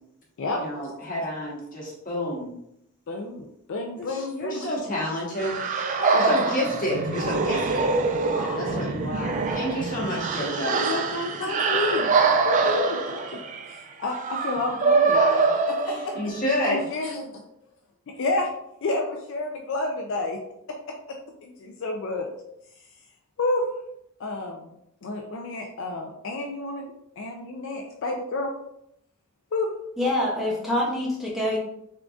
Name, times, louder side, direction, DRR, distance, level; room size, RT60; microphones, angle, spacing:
voice 1, 0.5-2.5 3.9-5.6 6.1-7.9 8.5-10.8 15.8-16.8, left 1 dB, 40° left, -4 dB, 1.3 m, -29 dB
voice 2, 3.1-4.7 6.0-6.5 8.2-8.8 10.5-12.1 12.4-13.2 13.7-16.1 16.7-17.4 18.2-18.5 18.8-20.4 21.1-22.3 23.4-23.6 24.2-24.7 25.0-28.5 29.5-29.7, left 2 dB, 60° left, 2 dB, 0.4 m, -30 dB
sound 1, 5.4-16.4, right 4 dB, 35° right, 0.3 m, -24 dB
voice 3, 30.0-31.6, left 1 dB, ahead, -5 dB, 0.6 m, -25 dB
3.7 x 3.5 x 2.4 m, 0.78 s
head